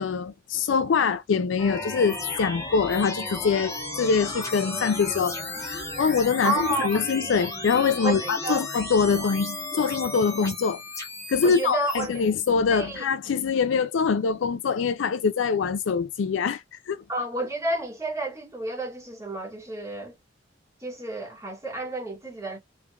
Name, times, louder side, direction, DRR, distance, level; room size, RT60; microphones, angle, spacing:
voice 1, 0.0-10.8 11.3-17.0, left 5 dB, 75° left, 0.4 m, -24 dB
sound 1, 1.6-12.5, left 2 dB, 15° left, 1.2 m, -35 dB
voice 2, 6.4-7.0 8.0-8.6 11.4-12.1 12.7-13.0 17.1-20.1 20.8-22.6, right 2 dB, 15° right, 1.8 m, -30 dB
3.4 x 3.2 x 2.4 m
head